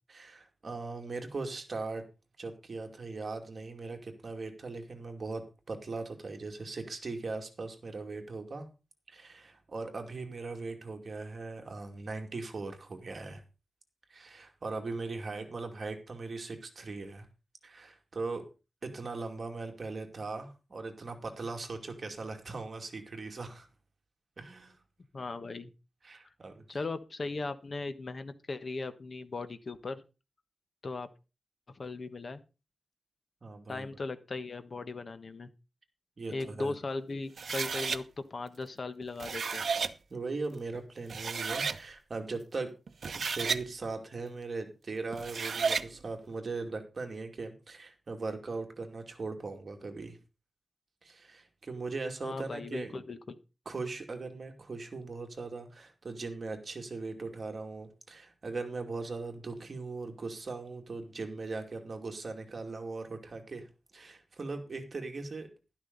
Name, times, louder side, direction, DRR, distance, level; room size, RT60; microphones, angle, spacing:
voice 1, 0.1-2.0 2.4-8.7 9.1-13.4 14.1-17.3 17.6-18.4 18.8-23.7 24.4-24.8 26.0-26.8 33.4-33.9 36.2-36.7 40.1-42.7 43.1-50.2 51.0-53.0 53.7-63.7 63.9-65.5, right 3 dB, 50° right, 4 dB, 2.5 m, -39 dB
voice 2, 25.1-25.7 26.7-30.0 30.8-31.1 31.7-32.4 33.7-35.5 36.3-39.7 52.2-53.4, left 3 dB, 50° left, 10 dB, 1.2 m, -38 dB
sound 1, 37.4-38.0 39.0-39.9 40.7-40.8 41.1-41.8 42.9-43.6 45.1-45.9, right 5 dB, 75° right, 0.8 m, -32 dB
12.0 x 12.0 x 4.0 m, 0.30 s
wide cardioid pair, 120°, 0 cm